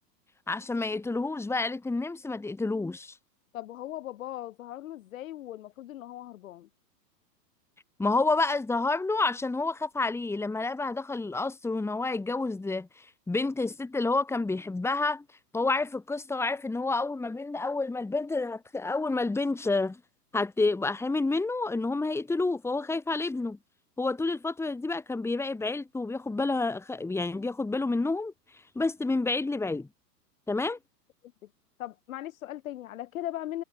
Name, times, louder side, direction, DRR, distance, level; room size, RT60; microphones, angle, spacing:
voice 1, 0.5-3.1 8.0-12.9 13.3-15.2 15.5-20.0 20.3-23.6 24.0-28.3 28.7-29.9 30.5-30.8, left 3 dB, 5° left, 2.6 m, -29 dB
voice 2, 3.5-6.7 31.4-31.5 31.8-33.6, left 13 dB, 55° left, 2.6 m, -38 dB
figure-of-eight pair, 105°, 49 cm